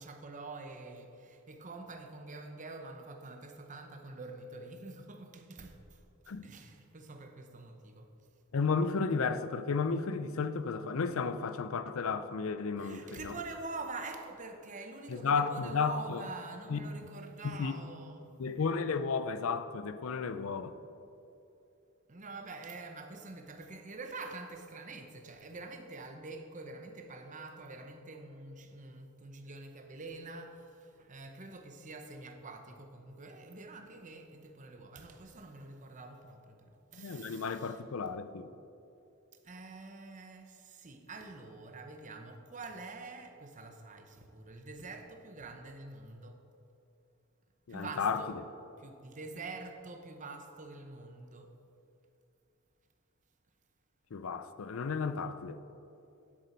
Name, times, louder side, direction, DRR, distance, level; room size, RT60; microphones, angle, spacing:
voice 1, 0.0-5.8 6.4-8.1 12.8-18.3 22.1-37.8 39.4-46.4 47.7-48.4 48.8-51.5, right 3 dB, 35° right, 0.8 m, -46 dB
voice 2, 8.5-13.4 15.1-16.2 16.7-16.9 17.4-17.7 18.4-20.7 36.9-38.5 47.7-48.2 54.1-55.6, left 5 dB, 65° left, 0.5 m, -33 dB
10.0 x 7.9 x 4.3 m
head